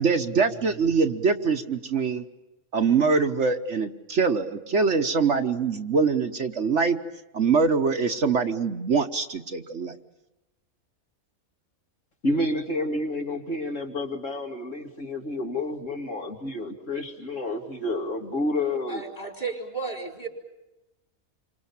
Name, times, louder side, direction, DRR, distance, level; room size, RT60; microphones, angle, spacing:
voice 1, 0.0-2.2 2.7-7.0 7.3-9.9, right 5 dB, 55° right, 6 dB, 1.4 m, -23 dB
voice 2, 12.2-19.0, left 1 dB, 60° left, 1 dB, 3.0 m, -29 dB
voice 3, 18.9-20.3, right 4 dB, 35° left, 3 dB, 4.5 m, -33 dB
28.5 x 25.5 x 7.2 m, 0.98 s
omnidirectional pair, 1.5 m